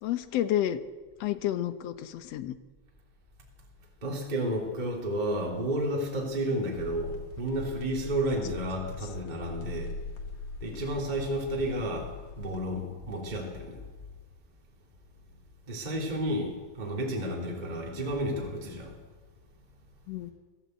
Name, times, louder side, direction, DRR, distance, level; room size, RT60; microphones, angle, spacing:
voice 1, 0.0-0.8 1.2-2.5 20.1-20.3, left 12 dB, 80° left, 10 dB, 1.4 m, -30 dB
voice 2, 4.0-9.9 10.6-12.1 12.4-13.8 15.7-18.9, right 1 dB, 15° right, -2 dB, 3.1 m, -31 dB
sound 1, 6.8-12.6, left 3 dB, 50° left, 2.7 m, -41 dB
23.5 x 14.0 x 8.2 m, 1.3 s
omnidirectional pair, 4.1 m